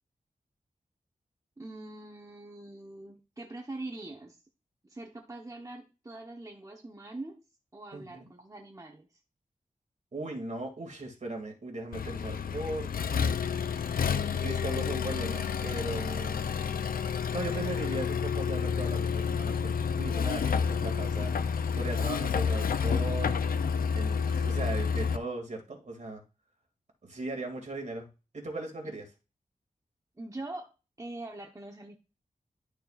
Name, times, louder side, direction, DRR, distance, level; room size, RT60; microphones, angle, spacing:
voice 1, 1.6-4.4 4.8-7.4 7.7-9.1 28.8-29.0 30.2-30.7 31.0-32.0, right 2 dB, 25° right, 2 dB, 1.0 m, -43 dB
voice 2, 7.9-8.3 10.1-13.5 14.4-16.4 17.3-23.4 23.9-26.2 27.0-29.0, right 2 dB, 55° right, 2 dB, 2.4 m, -38 dB
Accelerating revving vroom, 11.9-25.2, left 6 dB, 85° left, 0.5 m, -29 dB
11.5 x 6.5 x 2.5 m, 0.30 s
wide cardioid pair, 85°, 15 cm